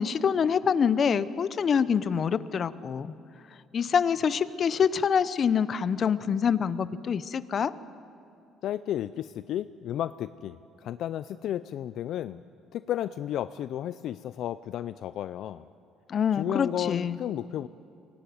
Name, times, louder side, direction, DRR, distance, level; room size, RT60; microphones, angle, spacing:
voice 1, 0.0-3.1 3.7-7.7 16.1-17.2, left 7 dB, 45° left, 15 dB, 0.8 m, -25 dB
voice 2, 8.6-12.4 12.7-15.7 16.4-17.7, left 11 dB, 65° left, 13 dB, 0.5 m, -33 dB
24.0 x 17.5 x 9.4 m, 2.6 s
cardioid pair, 105°, 0 cm